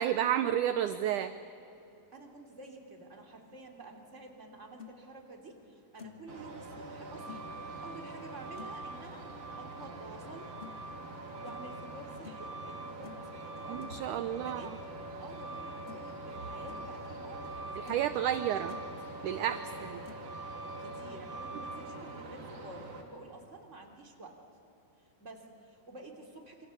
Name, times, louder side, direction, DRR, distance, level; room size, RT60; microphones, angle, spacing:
voice 1, 0.0-1.3 13.7-14.7 17.8-18.7 19.2-20.0, right 10 dB, 80° right, 11 dB, 1.8 m, -31 dB
voice 2, 2.1-7.5 7.8-9.2 9.6-10.5 11.4-13.9 14.3-14.7 15.2-18.8 19.4-19.9 20.5-24.4 25.0-26.7, right 2 dB, 20° right, 2 dB, 2.9 m, -50 dB
sound 1, 4.5-4.9 5.5-5.6 6.0-6.3 7.3-7.5 8.6-8.8 10.6-10.7 11.5-11.7 12.2-12.5 13.0-13.3 13.8-14.0 15.4-15.5 15.9-16.2 16.5-16.8 17.4-17.5 17.9-18.1 18.4-18.9 20.0-20.3, left 7 dB, 75° left, 0.6 m, -50 dB
Truck, 6.3-23.0, right 2 dB, 40° right, 3.7 m, -43 dB
27.5 x 25.5 x 8.3 m, 2.9 s
omnidirectional pair, 4.5 m